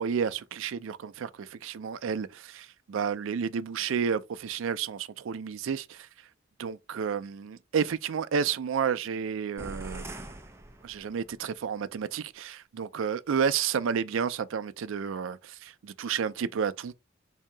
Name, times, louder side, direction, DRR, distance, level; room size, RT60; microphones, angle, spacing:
voice 1, 0.0-6.1 6.6-10.1 10.8-16.9, right 7 dB, 80° right, 0.4 m, -31 dB
sound 1, 9.6-11.4, right 1 dB, 15° right, 0.4 m, -42 dB
3.7 x 2.7 x 3.3 m
head